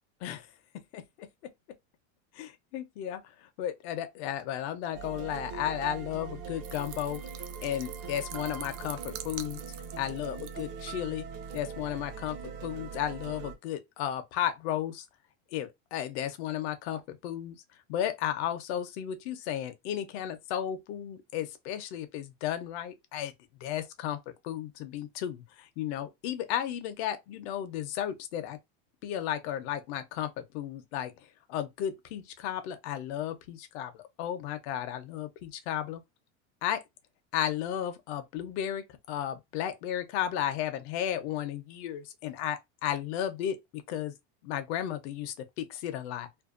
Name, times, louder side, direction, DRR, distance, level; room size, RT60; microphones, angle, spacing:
voice 1, 0.9-1.3 2.3-7.2 7.6-9.6 10.0-11.3 11.5-15.0 15.5-17.6 17.9-23.3 23.6-24.2 24.4-28.6 29.0-36.0 36.6-36.8 37.3-44.1 44.4-46.3, left 11 dB, 65° left, 0.7 m, -34 dB
sound 1, 4.9-13.5, right 6 dB, 40° right, 0.7 m, -41 dB
sound 2, 6.6-11.0 11.4-11.6, right 11 dB, 90° right, 0.6 m, -45 dB
2.6 x 2.2 x 2.4 m
supercardioid pair, 150°, 35 cm